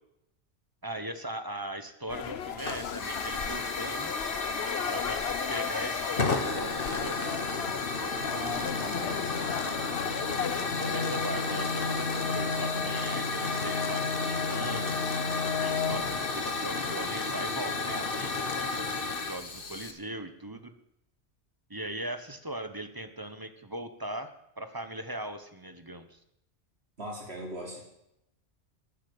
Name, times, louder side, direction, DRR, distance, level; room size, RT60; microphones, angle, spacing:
voice 1, 0.8-4.1 4.9-7.2 10.8-15.2 15.6-18.3 19.1-20.7 21.7-26.2, right 1 dB, 20° right, 9 dB, 1.2 m, -39 dB
sound 1, 2.1-10.7, left 8 dB, 65° left, 1.0 m, -36 dB
Hiss / Fire, 2.6-19.9, left 3 dB, 50° left, 1.7 m, -32 dB
voice 2, 8.1-9.6 27.0-27.8, right 1 dB, 65° right, 0 dB, 4.2 m, -41 dB
sound 2, 8.6-16.4, left 5 dB, 85° left, 1.1 m, -35 dB
12.5 x 10.0 x 8.8 m, 0.82 s
omnidirectional pair, 1.2 m